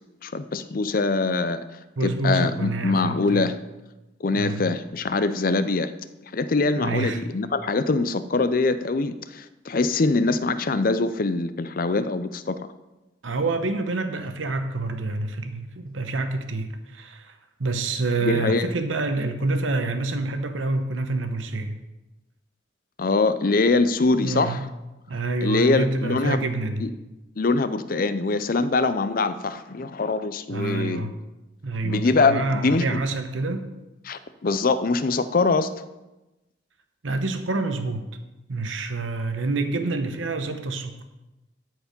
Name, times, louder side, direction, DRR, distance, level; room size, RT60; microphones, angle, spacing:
voice 1, 0.2-1.6 2.0-3.6 4.2-5.9 6.3-12.6 18.2-18.7 23.0-24.6 25.4-26.5 26.8-26.9 27.4-31.0 31.8-33.0 34.1-35.7, left 3 dB, 45° left, 12 dB, 0.5 m, -23 dB
voice 2, 2.0-3.5 4.3-4.6 6.7-7.2 13.2-21.8 24.1-24.7 25.1-26.9 30.5-31.1 31.6-33.7 37.0-38.0 38.5-41.0, right 3 dB, 85° right, 7 dB, 0.9 m, -27 dB
13.0 x 4.7 x 5.3 m, 1.0 s
head